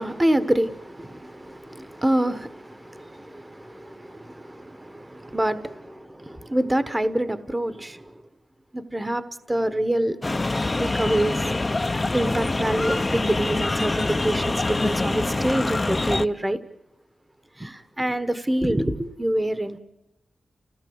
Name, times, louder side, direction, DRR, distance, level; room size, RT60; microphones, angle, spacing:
voice 1, 0.0-8.2 8.7-10.2 10.8-11.5 12.1-16.6 17.6-19.8, right 1 dB, 15° right, 12 dB, 1.2 m, -26 dB
sound 1, 10.2-16.3, left 2 dB, 25° left, 0.8 m, -25 dB
30.0 x 17.0 x 8.0 m, 0.95 s
wide cardioid pair, 110°, 0 cm